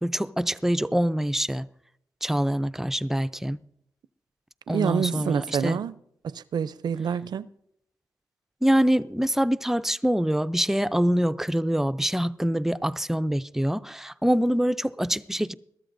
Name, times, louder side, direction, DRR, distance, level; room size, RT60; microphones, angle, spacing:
voice 1, 0.0-1.7 2.2-3.6 4.7-5.8 8.6-15.5, equal, 5° right, 0.4 m, -25 dB
voice 2, 4.7-5.9 6.2-7.5, right 7 dB, 75° right, 0.4 m, -27 dB
21.5 x 13.5 x 2.6 m
wide cardioid pair, 105°, 7 cm